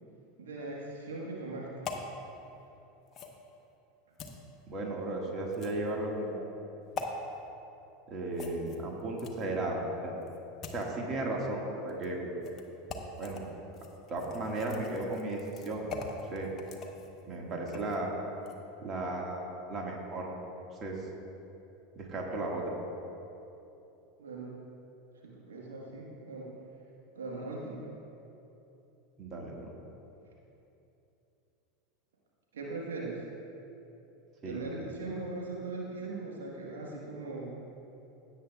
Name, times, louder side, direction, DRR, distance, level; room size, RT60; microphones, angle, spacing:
voice 1, 0.4-1.7 24.2-24.5 25.2-26.5 27.1-27.9 32.5-33.2 34.4-37.5, right 3 dB, 75° right, -3 dB, 1.5 m, -39 dB
sound 1, 1.8-2.1 3.1-3.4 4.2-4.4 5.5-5.9 6.9-7.1 8.3-9.5 10.2-10.9 11.9-12.1 12.4-12.6 12.9-13.4 13.7-18.0 18.4-18.6, left 4 dB, 35° left, 1.1 m, -43 dB
voice 2, 4.7-6.5 8.1-10.2 10.7-12.3 13.2-13.4 14.1-15.8 16.3-16.5 17.3-18.1 18.8-19.4 19.7-20.3 20.8-21.0 22.0-22.7 29.2-29.7 34.4-34.6, right 2 dB, 35° right, -1 dB, 1.9 m, -35 dB
16.5 x 8.5 x 2.4 m, 2.9 s
figure-of-eight pair, 80°, 0 cm